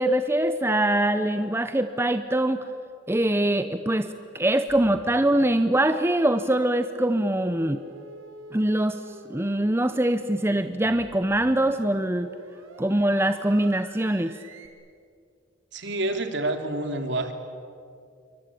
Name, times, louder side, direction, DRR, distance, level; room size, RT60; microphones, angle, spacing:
voice 1, 0.0-2.6 3.1-7.8 8.5-9.0 9.3-12.3 12.8-14.3, right 1 dB, 10° right, 9 dB, 0.7 m, -23 dB
sound 1, 4.7-14.7, right 2 dB, 85° right, 3.4 m, -47 dB
voice 2, 15.7-17.3, right 2 dB, 60° right, 6 dB, 2.9 m, -28 dB
28.0 x 24.0 x 8.6 m, 2.3 s
head